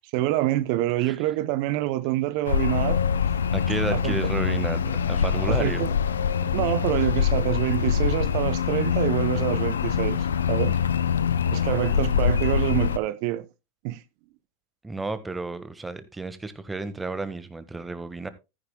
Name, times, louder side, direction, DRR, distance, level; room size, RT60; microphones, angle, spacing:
voice 1, 0.0-3.0 3.9-4.2 5.4-5.9 6.5-10.8 11.5-13.5 13.8-14.0, right 16 dB, 60° right, 0.6 m, -26 dB
sound 1, 2.4-13.0, left 7 dB, 90° left, 0.6 m, -24 dB
voice 2, 3.4-5.8 6.6-6.7 14.8-18.3, right 3 dB, 10° right, 1.4 m, -32 dB
14.0 x 9.9 x 2.2 m
hypercardioid pair, 90°, 0 cm